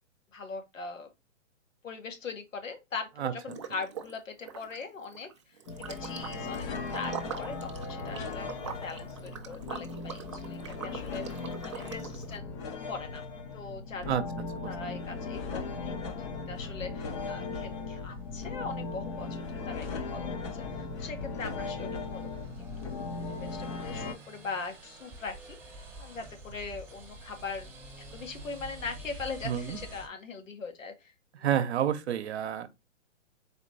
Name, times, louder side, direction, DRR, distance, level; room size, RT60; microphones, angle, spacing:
voice 1, 0.3-1.1 1.8-5.3 5.8-6.7 6.9-12.6 12.9-13.2 13.5-14.2 14.6-16.1 16.5-22.5 22.8-23.0 23.4-25.6 26.0-27.7 28.1-31.1, left 4 dB, 85° left, 1.3 m, -41 dB
Liquid, 3.5-4.2 4.4-12.4, right 7 dB, 25° right, 0.3 m, -43 dB
sound 1, 5.7-24.1, left 4 dB, 25° left, 0.5 m, -38 dB
sound 2, 17.5-30.1, right 1 dB, 5° right, 0.7 m, -49 dB
voice 2, 29.4-29.8 31.4-32.7, right 10 dB, 60° right, 0.8 m, -29 dB
4.1 x 2.9 x 4.0 m
hypercardioid pair, 140°, 38 cm